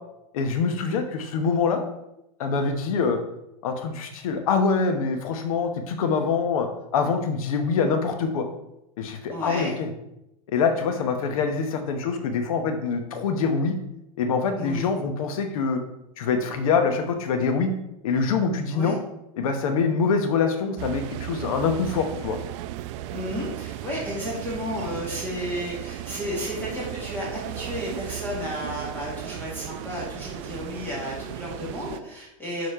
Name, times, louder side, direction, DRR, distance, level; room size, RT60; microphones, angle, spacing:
voice 1, 0.3-1.8 2.4-3.2 3.6-8.4 9.0-9.9 10.5-13.8 14.2-15.8 16.2-17.7 18.0-19.0 19.4-22.4, left 5 dB, 75° left, 6 dB, 1.0 m, -24 dB
voice 2, 9.3-9.7 14.6-14.9 18.7-19.0 23.1-32.7, equal, 10° left, -5 dB, 1.8 m, -33 dB
sound 1, 20.8-32.0, right 13 dB, 55° right, 0.5 m, -36 dB
6.5 x 4.2 x 5.6 m, 0.86 s
supercardioid pair, 135°, 18 cm